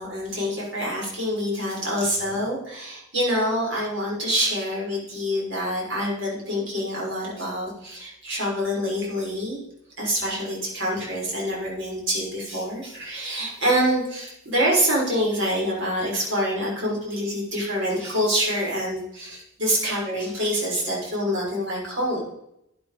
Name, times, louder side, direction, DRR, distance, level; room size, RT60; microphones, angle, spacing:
voice 1, 0.0-9.6 10.0-22.2, equal, 60° right, -4 dB, 6.1 m, -26 dB
12.0 x 10.5 x 5.2 m, 0.81 s
head